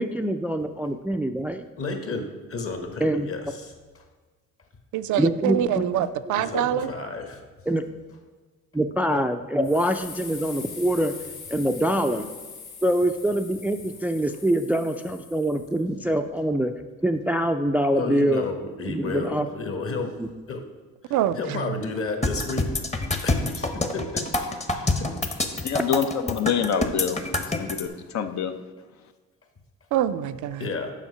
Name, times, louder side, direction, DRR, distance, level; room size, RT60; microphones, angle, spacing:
voice 1, 0.0-1.7 3.0-3.3 5.2-5.9 7.7-7.8 8.7-11.1 11.5-12.3 12.8-16.7 17.0-18.5 18.9-19.5 20.2-20.3, right 1 dB, 5° right, 7 dB, 0.3 m, -24 dB
voice 2, 1.8-3.7 6.3-7.4 17.9-20.1 20.5-20.6 21.0-22.7 23.2-25.1 30.6-30.9, left 3 dB, 45° left, 4 dB, 1.4 m, -32 dB
voice 3, 4.9-6.9 9.1-9.2 21.1-21.8 29.9-30.7, right 10 dB, 75° right, 12 dB, 0.5 m, -25 dB
sound 1, 9.6-15.8, left 5 dB, 85° left, 1.6 m, -42 dB
sound 2, 22.2-27.8, left 2 dB, 20° left, 0.9 m, -26 dB
voice 4, 25.6-27.2 27.6-28.5, left 8 dB, 65° left, 8 dB, 0.7 m, -26 dB
7.4 x 5.7 x 5.5 m, 1.3 s
cardioid pair, 90°, 30 cm